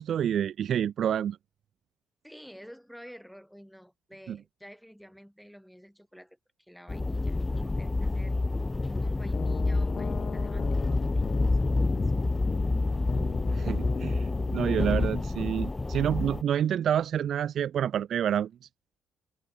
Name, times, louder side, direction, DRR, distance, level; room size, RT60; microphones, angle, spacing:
voice 1, 0.0-1.4 4.3-4.4 13.5-18.5, right 9 dB, 65° right, 0.7 m, -28 dB
voice 2, 2.2-8.3 9.0-11.3 11.9-12.1, equal, ahead, 4.7 m, -50 dB
sound 1, 6.9-16.4, left 2 dB, 20° left, 1.3 m, -28 dB
sound 2, 9.3-15.1, left 6 dB, 45° left, 1.0 m, -37 dB
cardioid pair, 90°, 0 cm